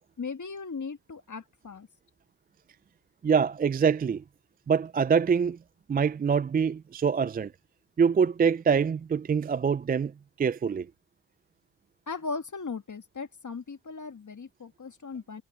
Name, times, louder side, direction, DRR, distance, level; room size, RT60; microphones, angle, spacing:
voice 1, 0.2-1.9 12.1-15.4, left 4 dB, 40° left, 2.1 m, -37 dB
voice 2, 3.2-4.2 4.7-5.6 5.9-7.5 8.0-10.1 10.4-10.9, right 6 dB, 20° right, 0.3 m, -24 dB
supercardioid pair, 50°, 48 cm